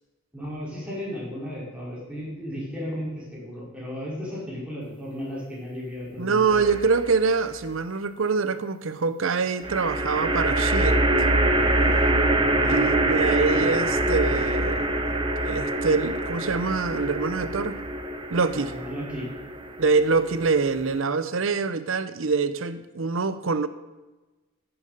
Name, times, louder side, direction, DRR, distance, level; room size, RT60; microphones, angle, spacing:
voice 1, 0.3-6.7 12.0-13.5 18.6-19.3, equal, 5° right, -6 dB, 4.7 m, -35 dB
voice 2, 6.2-11.1 12.7-14.9 15.4-17.8 18.3-18.7 19.8-23.7, right 4 dB, 65° right, 12 dB, 0.7 m, -25 dB
sound 1, 6.5-7.2 9.6-21.0, right 1 dB, 25° right, 0.9 m, -25 dB
14.0 x 7.0 x 6.6 m, 1.1 s
head